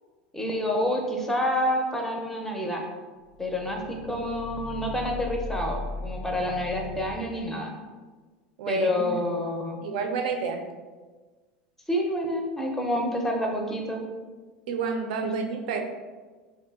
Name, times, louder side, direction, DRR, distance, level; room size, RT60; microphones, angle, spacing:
voice 1, 0.3-2.8 3.4-7.7 8.7-9.8 11.9-14.0 15.2-15.3, left 1 dB, 5° left, 1 dB, 0.5 m, -28 dB
sound 1, 3.3-7.2, left 2 dB, 80° left, 0.5 m, -38 dB
voice 2, 8.6-9.1 9.8-10.6 14.7-15.8, right 5 dB, 65° right, 3 dB, 0.4 m, -29 dB
2.8 x 2.5 x 2.3 m, 1.4 s
hypercardioid pair, 85°, 5 cm